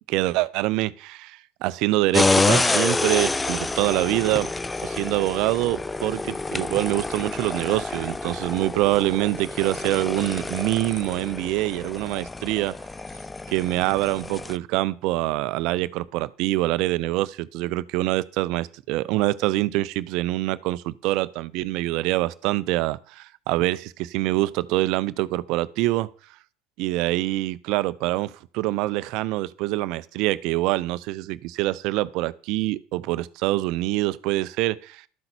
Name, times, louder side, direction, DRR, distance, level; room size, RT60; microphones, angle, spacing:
voice 1, 0.1-4.5 4.8-12.7 13.5-26.1 26.8-35.1, right 18 dB, 65° right, 0.6 m, -25 dB
sound 1, 2.1-14.6, left 3 dB, 15° left, 0.5 m, -27 dB
13.0 x 7.8 x 4.4 m
hypercardioid pair, 75°, 0 cm